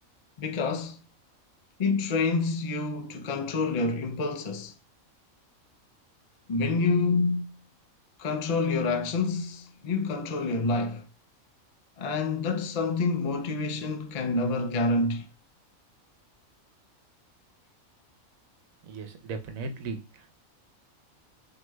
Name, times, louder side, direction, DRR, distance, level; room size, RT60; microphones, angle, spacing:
voice 1, 0.4-1.0 1.8-4.7 6.5-7.6 8.2-11.1 12.0-15.3, left 3 dB, 65° left, 0.4 m, -27 dB
voice 2, 18.8-20.0, right 4 dB, 80° right, 1.1 m, -36 dB
6.0 x 3.0 x 2.2 m
omnidirectional pair, 1.4 m